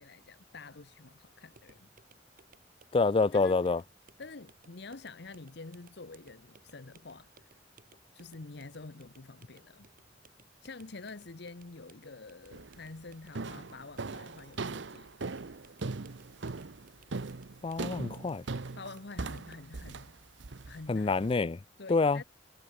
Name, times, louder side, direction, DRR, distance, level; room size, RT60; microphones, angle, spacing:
voice 1, 0.0-1.9 3.3-3.7 4.2-7.5 8.1-9.9 10.6-15.1 18.8-20.1 20.6-21.1 21.8-22.2, left 3 dB, 65° left, 1.0 m, -47 dB
sound 1, 1.5-19.7, right 3 dB, 50° right, 6.4 m, -63 dB
voice 2, 2.9-3.8 17.6-18.4 20.9-21.6 21.9-22.2, left 3 dB, 30° left, 0.4 m, -27 dB
sound 2, 12.5-12.9 13.4-21.3, right 3 dB, 75° right, 0.8 m, -40 dB
head